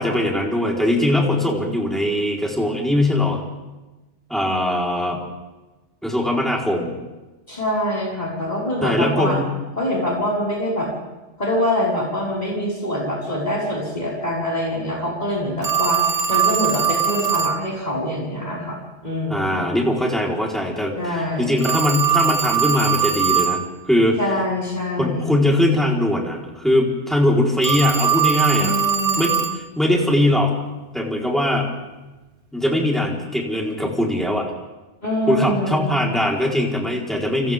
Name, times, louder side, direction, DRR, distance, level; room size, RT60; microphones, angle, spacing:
voice 1, 0.0-3.4 4.3-5.2 6.0-7.0 8.8-9.5 19.3-24.2 25.0-28.7 29.2-30.5 30.9-31.7 32.5-34.5 35.3-37.5, left 1 dB, ahead, -3 dB, 4.2 m, -21 dB
voice 2, 7.5-9.4 9.8-10.9 11.4-18.8 19.0-19.6 21.0-21.6 24.2-25.4 28.6-29.3 35.0-35.9, left 1 dB, 35° left, -6 dB, 5.4 m, -24 dB
Telephone, 15.6-17.6 21.6-23.6 27.6-29.6, right 7 dB, 50° right, 1.3 m, -21 dB
29.0 x 27.0 x 3.7 m, 1.1 s
omnidirectional pair, 1.2 m